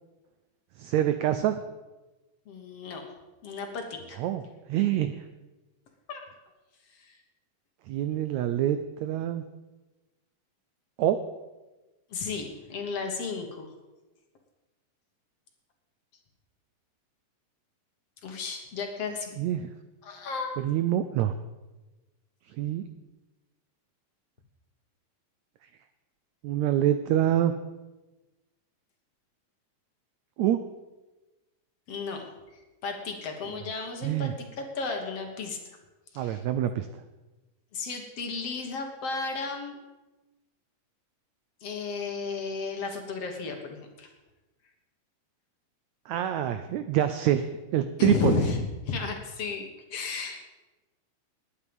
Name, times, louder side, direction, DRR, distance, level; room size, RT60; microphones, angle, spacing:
voice 1, 0.8-1.6 4.2-4.4 4.7-5.2 7.9-9.4 11.0-11.2 19.4-19.7 20.6-21.3 22.6-22.8 26.4-27.5 30.4-30.6 34.0-34.3 36.2-36.9 46.1-48.4, right 11 dB, 90° right, 10 dB, 1.6 m, -26 dB
voice 2, 2.5-3.0 3.4-4.2 6.1-6.3 6.9-7.2 12.1-13.7 18.2-19.3 20.0-20.5 31.9-32.3 32.8-35.6 36.1-36.4 37.7-39.8 41.6-44.1 48.0-49.6 49.9-50.5, left 4 dB, 55° left, 3 dB, 2.1 m, -33 dB
20.0 x 9.5 x 5.3 m, 1.1 s
omnidirectional pair, 4.0 m